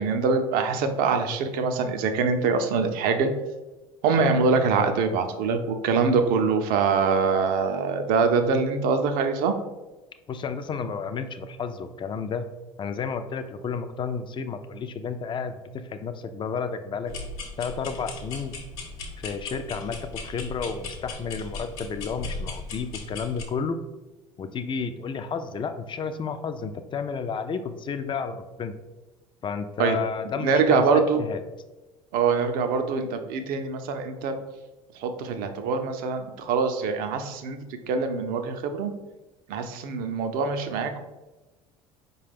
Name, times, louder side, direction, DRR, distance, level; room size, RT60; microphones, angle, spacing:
voice 1, 0.0-3.3 4.0-9.5 29.8-30.0 30.4-31.2 32.1-34.4 34.9-37.6 37.9-38.9 39.5-41.0, right 5 dB, 55° right, 7 dB, 0.5 m, -24 dB
voice 2, 10.3-12.5 12.8-17.1 17.6-18.6 19.2-23.8 24.4-28.7 29.4-31.4, left 5 dB, 30° left, 9 dB, 0.4 m, -31 dB
sound 1, 17.1-23.4, left 3 dB, 60° left, 0.8 m, -37 dB
4.8 x 2.3 x 3.4 m, 1.1 s
hypercardioid pair, 65°, 17 cm